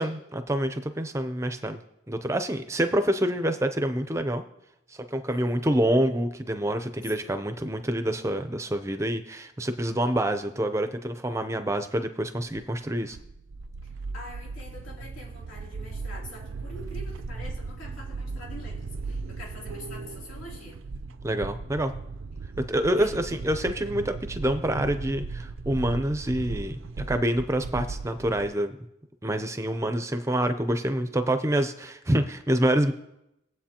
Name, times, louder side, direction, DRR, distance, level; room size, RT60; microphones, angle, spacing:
voice 1, 0.0-1.8 2.1-4.4 4.9-13.2 21.2-21.9 22.7-28.8 29.2-32.9, right 1 dB, 15° right, 8 dB, 0.5 m, -27 dB
voice 2, 5.3-5.7 7.0-7.4 13.8-20.9 23.0-23.1, left 1 dB, 90° left, -4 dB, 3.0 m, -45 dB
sound 1, 13.0-28.5, right 3 dB, 85° right, 0.5 m, -37 dB
20.5 x 7.9 x 2.9 m, 0.85 s
head